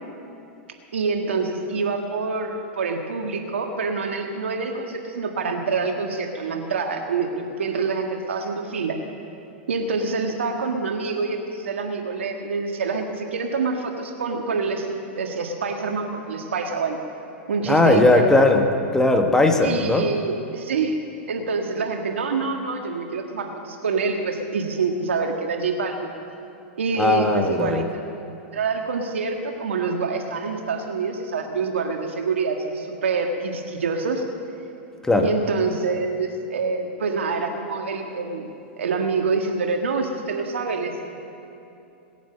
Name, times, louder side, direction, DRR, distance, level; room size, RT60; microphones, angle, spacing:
voice 1, 0.9-9.0 9.7-14.9 15.1-17.0 17.5-18.2 19.6-21.0 21.3-26.1 26.8-28.1 28.5-34.2 35.2-38.5 38.8-41.1, right 4 dB, 90° right, 3 dB, 1.7 m, -26 dB
voice 2, 17.7-18.7 18.9-20.0 27.0-27.8 35.1-35.3, left 2 dB, 10° left, 4 dB, 1.4 m, -18 dB
18.5 x 9.3 x 6.8 m, 2.8 s
hypercardioid pair, 115°, 6 cm